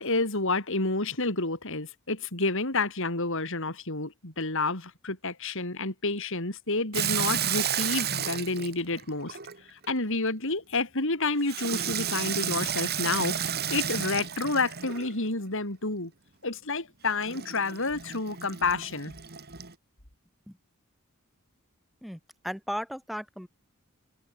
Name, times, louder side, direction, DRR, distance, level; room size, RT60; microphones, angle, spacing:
voice 1, 0.0-9.4 9.7-16.1 16.4-19.1, left 3 dB, 65° left, 5.1 m, -29 dB
Water tap faucet / Sink (filling or washing), 6.9-9.9 11.5-15.2 17.2-19.7, right 9 dB, 50° right, 3.2 m, -32 dB
voice 2, 22.0-23.5, equal, ahead, 6.1 m, -36 dB
head